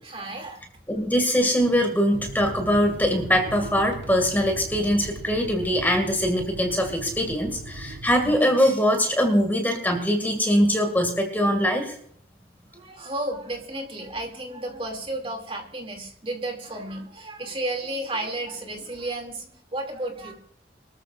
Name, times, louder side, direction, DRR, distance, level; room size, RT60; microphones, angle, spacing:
voice 1, 0.0-0.6 12.7-19.4 19.7-20.3, right 1 dB, 30° right, 3 dB, 2.7 m, -32 dB
voice 2, 0.9-12.0, equal, 10° left, 3 dB, 2.2 m, -22 dB
sound 1, 2.1-8.4, right 2 dB, 80° right, 1.3 m, -38 dB
24.0 x 13.5 x 2.6 m, 0.66 s
head